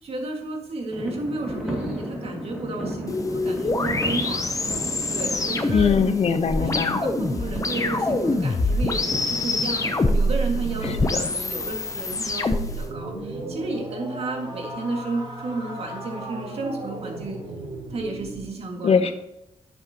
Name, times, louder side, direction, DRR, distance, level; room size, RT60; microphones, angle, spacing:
voice 1, 0.0-4.4 5.1-6.0 6.6-17.4 17.9-19.1, right 2 dB, 55° right, 1 dB, 2.0 m, -32 dB
sound 1, 0.9-11.4, equal, 5° right, 2.2 m, -34 dB
sound 2, 3.1-12.8, left 2 dB, 30° left, 0.7 m, -25 dB
voice 2, 5.7-7.0 10.8-11.1 18.8-19.1, left 6 dB, 60° left, 9 dB, 0.9 m, -21 dB
sound 3, 12.6-18.6, right 2 dB, 40° right, 3.6 m, -36 dB
11.0 x 8.0 x 2.9 m, 0.87 s
wide cardioid pair, 145°, 12 cm